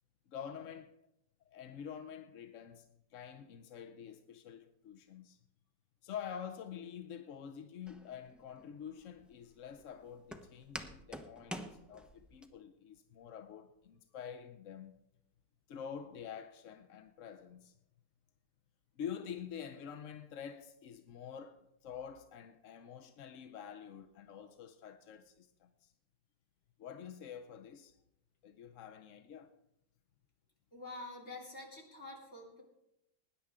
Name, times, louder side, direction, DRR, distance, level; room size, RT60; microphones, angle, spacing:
voice 1, 0.3-0.9 1.5-2.9 3.1-5.4 6.0-14.9 15.7-17.7 19.0-25.9 26.8-28.0 28.4-29.6, left 8 dB, 65° left, 0.8 m, -47 dB
Walk footsteps, 7.9-12.5, equal, ahead, 0.3 m, -48 dB
voice 2, 30.7-32.6, left 2 dB, 35° left, 3.3 m, -47 dB
20.0 x 10.0 x 3.6 m
omnidirectional pair, 1.9 m